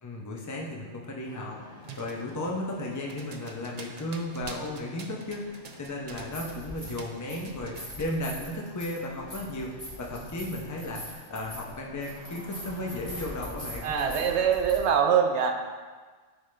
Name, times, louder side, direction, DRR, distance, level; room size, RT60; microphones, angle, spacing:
voice 1, 0.0-9.7 10.0-13.9, left 1 dB, 20° left, -1 dB, 0.6 m, -35 dB
Engine starting, 1.2-14.5, left 1 dB, 80° left, 2.3 m, -50 dB
sound 1, 1.8-6.6 6.9-8.1, right 5 dB, 55° right, 0.4 m, -46 dB
sound 2, 6.2-7.0 7.3-14.8, equal, 35° left, 2.0 m, -42 dB
voice 2, 13.8-15.5, right 7 dB, 70° right, 4 dB, 0.9 m, -23 dB
9.0 x 3.7 x 3.3 m, 1.4 s
omnidirectional pair, 1.2 m